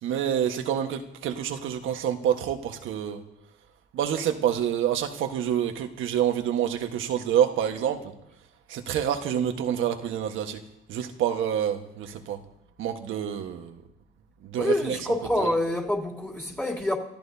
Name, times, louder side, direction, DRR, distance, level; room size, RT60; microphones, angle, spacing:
voice 1, 0.0-3.2 3.9-8.0 8.7-10.6 10.9-12.4 12.8-13.8 14.4-15.0 15.4-15.5, right 9 dB, 85° right, 1.4 m, -27 dB
voice 2, 14.6-17.0, left 1 dB, 10° left, 3.2 m, -26 dB
29.5 x 14.0 x 2.8 m
cardioid pair, 90°, 20 cm